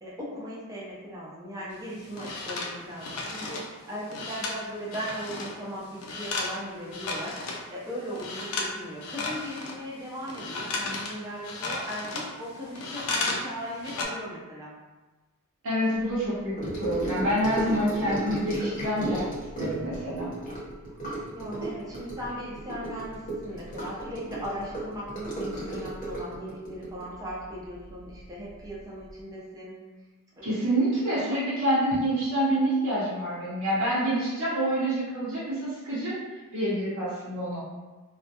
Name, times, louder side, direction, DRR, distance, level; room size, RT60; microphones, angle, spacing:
voice 1, 0.0-14.7 17.7-18.2 21.3-29.9 30.4-30.5 31.2-31.4, equal, 15° right, -6 dB, 0.5 m, -38 dB
sound 1, 1.7-7.7 8.1-8.7 9.0-13.5 13.7-14.1, left 3 dB, 80° left, 0.4 m, -34 dB
voice 2, 15.6-19.2 19.6-20.3 30.4-36.1 36.5-37.6, right 1 dB, 75° right, -10 dB, 0.7 m, -27 dB
Gurgling / Sink (filling or washing) / Trickle dribble, 16.6-28.2 28.5-28.8 29.1-29.2, right 1 dB, 40° left, 0.8 m, -34 dB
2.2 x 2.0 x 2.7 m, 1.2 s
head